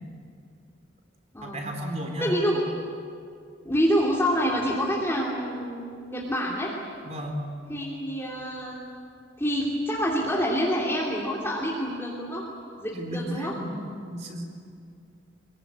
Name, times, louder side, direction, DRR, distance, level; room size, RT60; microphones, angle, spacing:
voice 1, 1.4-2.6 7.0-7.4 12.9-13.8 14.1-14.4, equal, 35° right, 2 dB, 4.0 m, -33 dB
voice 2, 2.2-2.7 3.6-6.7 7.7-8.8 9.4-12.4 12.8-13.5, equal, 10° left, -5 dB, 3.1 m, -27 dB
25.0 x 22.0 x 9.5 m, 2.3 s
head